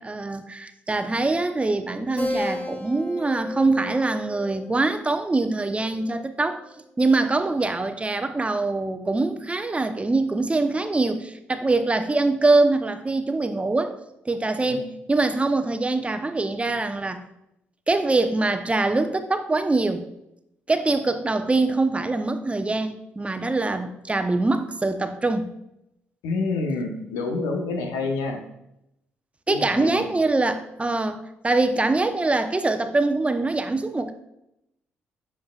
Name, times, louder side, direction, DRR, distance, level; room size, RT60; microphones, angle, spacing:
voice 1, 0.0-6.6 7.0-13.9 14.2-17.2 17.9-20.0 20.7-25.5 29.5-34.1, right 3 dB, 20° right, 8 dB, 0.8 m, -23 dB
Keyboard (musical), 2.2-7.1, left 2 dB, 20° left, 2.0 m, -35 dB
voice 2, 26.2-28.4 29.5-30.1, left 3 dB, 70° left, 3 dB, 1.1 m, -28 dB
10.5 x 7.3 x 2.4 m, 0.83 s
figure-of-eight pair, 45°, 6 cm